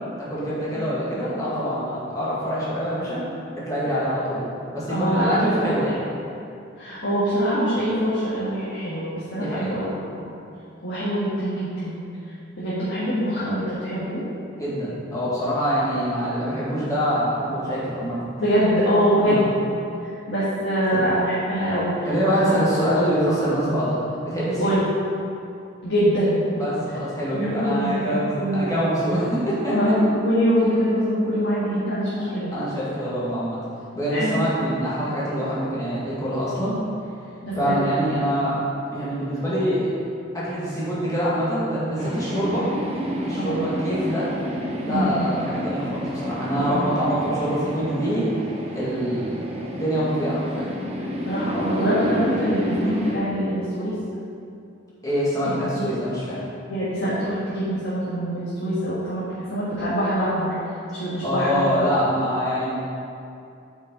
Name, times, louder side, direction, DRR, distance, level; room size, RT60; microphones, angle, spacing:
voice 1, 0.2-3.3 3.5-4.4 4.7-5.9 9.4-9.7 14.6-18.2 19.2-19.4 20.9-21.0 22.1-24.0 24.2-24.8 26.6-29.9 32.2-33.6 33.9-36.8 37.5-38.6 38.9-39.9 40.3-42.7 43.2-44.3 44.8-48.3 48.7-49.4 49.7-50.7 55.0-56.4 61.2-62.7, equal, 15° left, -9 dB, 1.8 m, -25 dB
voice 2, 4.9-5.7 6.8-9.9 10.8-12.0 12.6-14.2 18.3-19.5 20.3-22.1 22.4-22.5 24.6-24.9 25.8-26.5 27.3-28.7 29.7-32.5 34.1-34.5 37.4-37.8 43.4-43.7 44.9-45.3 46.5-46.8 47.0-47.1 51.2-53.9 55.4-55.8 56.7-59.2 59.5-60.5 60.9-61.7, equal, 65° left, -10 dB, 1.7 m, -24 dB
sound 1, 42.0-53.2, equal, 30° right, 0.8 m, -30 dB
8.4 x 5.5 x 3.9 m, 2.6 s
head